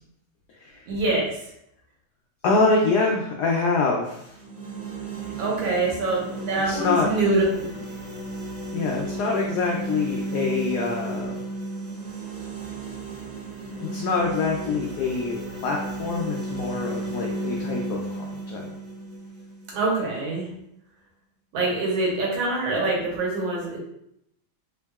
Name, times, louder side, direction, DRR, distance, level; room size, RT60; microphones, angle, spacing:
voice 1, 0.9-1.3 5.4-7.8 19.7-20.5 21.5-23.8, right 2 dB, 70° right, -3 dB, 1.7 m, -25 dB
voice 2, 2.4-4.4 6.7-7.1 8.7-11.4 13.8-18.6, left 3 dB, 85° left, -1 dB, 0.8 m, -25 dB
sound 1, 4.2-20.3, right 1 dB, 45° right, 0.6 m, -33 dB
3.7 x 3.3 x 2.3 m, 0.77 s
omnidirectional pair, 2.3 m